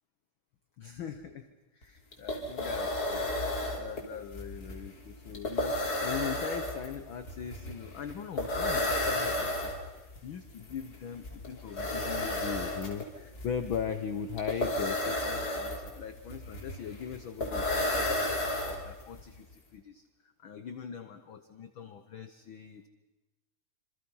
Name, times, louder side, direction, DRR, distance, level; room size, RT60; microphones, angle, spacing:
voice 1, 0.8-1.4 1.8-3.2 3.8-9.7 10.2-18.3 18.6-20.0 20.4-22.9, left 7 dB, 70° left, 9 dB, 1.2 m, -40 dB
sound 1, 1.8-1.9 2.1-19.2, left 1 dB, 30° left, 3.6 m, -33 dB
27.0 x 26.5 x 5.6 m, 1.1 s
omnidirectional pair, 3.7 m